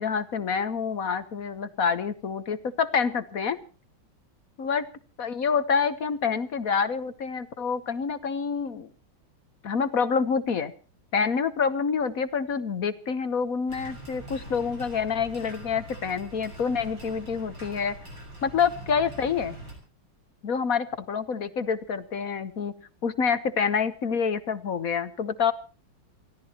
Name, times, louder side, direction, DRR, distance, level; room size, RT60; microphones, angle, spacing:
voice 1, 0.0-3.6 4.6-4.8 5.2-8.9 9.6-10.7 11.1-17.9 18.4-19.6 20.4-22.7 23.0-25.5, left 6 dB, 50° left, 12 dB, 1.2 m, -27 dB
sound 1, 13.7-19.7, right 1 dB, 60° right, 7.3 m, -43 dB
28.5 x 16.5 x 2.9 m, 0.37 s
omnidirectional pair, 2.3 m